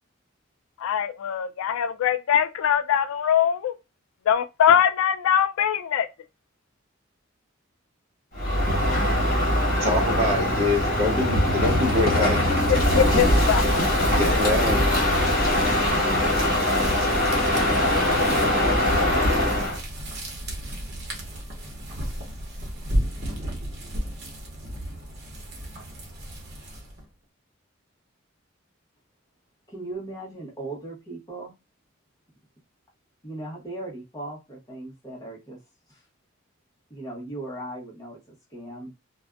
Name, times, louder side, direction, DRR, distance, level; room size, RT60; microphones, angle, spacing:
voice 1, 0.8-3.7 4.3-6.1 12.7-13.8, left 9 dB, 85° left, 0.3 m, -22 dB
Crow, 8.3-19.8, left 1 dB, 45° left, 1.2 m, -22 dB
voice 2, 9.8-12.6 14.1-14.9, left 2 dB, 30° right, 0.6 m, -25 dB
sound 1, 12.6-27.1, equal, 55° right, 0.8 m, -34 dB
voice 3, 29.7-31.5 33.2-35.6 35.9-36.0 36.9-38.9, right 2 dB, 20° left, 0.9 m, -38 dB
2.5 x 2.2 x 2.3 m
head